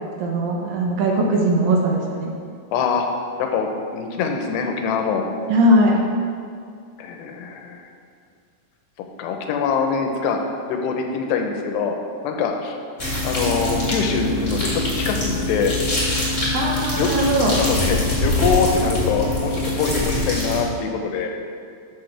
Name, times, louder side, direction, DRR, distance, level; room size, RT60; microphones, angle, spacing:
voice 1, 0.2-2.3 5.5-6.0 16.5-17.5, right 1 dB, 75° right, 0 dB, 2.2 m, -19 dB
voice 2, 2.7-3.1 3.4-5.2 7.0-7.8 9.0-12.0 12.2-12.8 13.2-15.7 16.9-17.1 17.6-21.3, left 5 dB, 80° left, 3 dB, 2.9 m, -24 dB
sound 1, 13.0-20.6, left 2 dB, 20° left, 1.7 m, -23 dB
12.0 x 7.2 x 3.4 m, 2.2 s
omnidirectional pair, 4.9 m